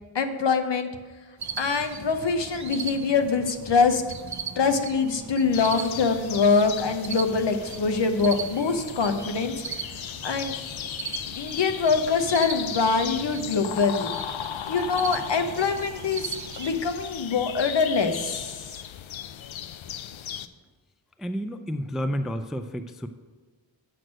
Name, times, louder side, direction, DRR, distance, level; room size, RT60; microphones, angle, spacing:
voice 1, 0.1-0.9 1.6-4.0 4.6-9.5 10.2-10.5 11.4-14.1 14.7-18.7, left 4 dB, 65° left, 7 dB, 0.9 m, -24 dB
sound 1, 1.4-16.8, right 6 dB, 40° right, 0.6 m, -39 dB
sound 2, 5.5-20.5, left 9 dB, 90° left, 0.5 m, -37 dB
voice 2, 21.2-23.1, equal, ahead, 9 dB, 0.3 m, -30 dB
7.9 x 6.2 x 6.3 m, 1.4 s
wide cardioid pair, 115°, 46 cm